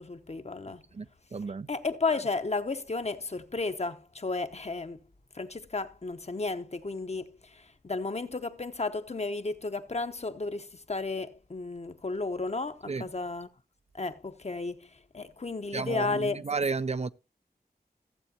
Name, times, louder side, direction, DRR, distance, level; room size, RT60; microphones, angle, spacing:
voice 1, 0.0-0.8 1.7-5.0 5.3-13.5 13.9-16.4, left 3 dB, 40° left, 0.9 m, -33 dB
voice 2, 0.9-1.7 12.9-13.1 15.7-17.1, right 4 dB, 40° right, 0.4 m, -32 dB
15.0 x 7.7 x 2.8 m
wide cardioid pair, 65°, 17 cm